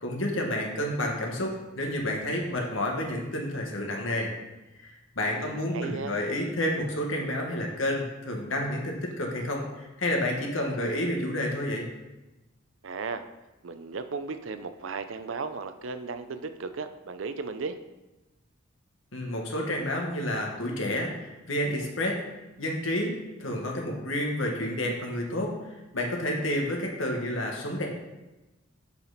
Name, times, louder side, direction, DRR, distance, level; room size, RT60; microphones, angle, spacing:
voice 1, 0.0-4.3 4.8-11.9 19.1-22.2 22.6-27.9, left 1 dB, 75° left, 0 dB, 1.6 m, -30 dB
voice 2, 5.2-6.2 12.8-13.3 13.6-17.8, right 4 dB, 75° right, 10 dB, 0.6 m, -36 dB
7.2 x 5.9 x 4.1 m, 1.1 s
head